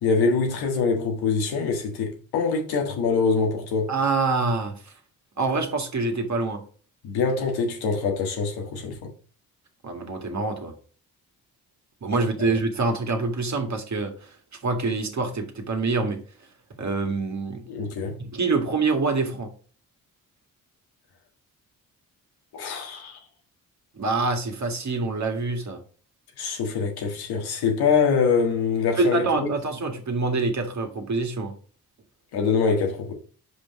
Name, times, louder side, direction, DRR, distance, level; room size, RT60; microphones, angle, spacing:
voice 1, 0.0-3.9 7.0-9.1 12.4-12.5 17.7-18.2 22.5-23.2 26.4-29.5 32.3-33.1, left 5 dB, 90° left, 1.7 m, -24 dB
voice 2, 3.9-4.9 5.4-6.6 9.8-10.7 12.0-14.3 14.6-16.2 16.8-17.6 18.2-19.5 23.9-25.8 29.0-31.5, right 3 dB, 50° right, 2.0 m, -26 dB
5.4 x 5.0 x 4.9 m
supercardioid pair, 60°, 37 cm